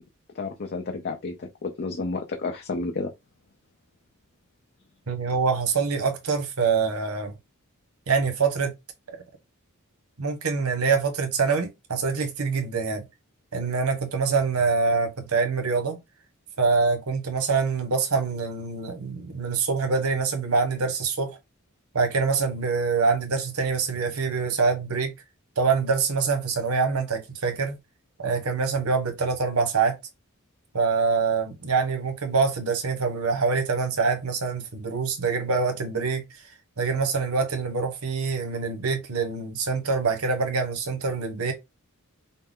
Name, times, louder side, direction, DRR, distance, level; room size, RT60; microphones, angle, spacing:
voice 1, 0.3-3.1, left 3 dB, 50° left, 0.6 m, -31 dB
voice 2, 5.1-7.3 8.1-8.7 9.1-9.2 10.2-13.0 13.5-16.0 16.6-21.4 21.9-25.1 25.6-27.8 28.2-30.0 30.7-36.3 36.8-41.5, right 4 dB, 90° right, 1.0 m, -25 dB
5.5 x 2.0 x 3.7 m
head